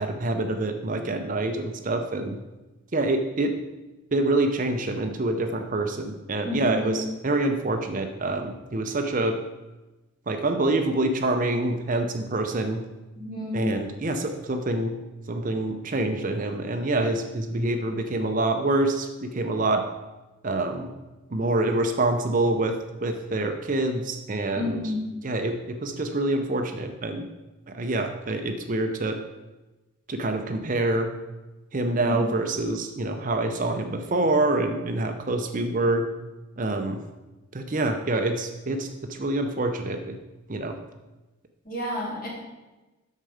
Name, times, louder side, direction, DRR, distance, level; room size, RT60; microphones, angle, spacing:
voice 1, 0.0-2.4 2.9-3.5 4.1-9.4 10.3-12.8 13.5-14.9 15.3-19.8 20.4-20.9 21.3-24.8 25.2-27.3 27.7-29.2 30.1-31.1 31.7-36.0 36.6-37.0 37.5-40.2 40.5-40.8, right 2 dB, 40° right, 5 dB, 0.6 m, -26 dB
voice 2, 6.4-7.0 13.2-13.7 24.6-25.1 32.0-32.2 41.6-42.3, left 1 dB, 40° left, -3 dB, 2.5 m, -30 dB
9.1 x 6.6 x 4.9 m, 1.1 s
head